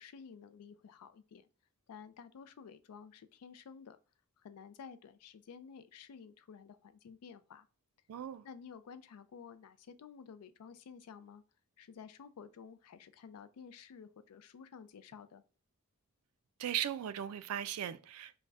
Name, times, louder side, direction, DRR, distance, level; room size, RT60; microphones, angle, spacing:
voice 1, 0.0-1.5 1.9-4.0 4.4-7.7 8.4-11.4 11.8-15.4, left 6 dB, 90° left, 0.4 m, -52 dB
voice 2, 8.1-8.5 16.6-18.4, right 10 dB, 75° right, 0.3 m, -38 dB
3.4 x 2.1 x 2.4 m
head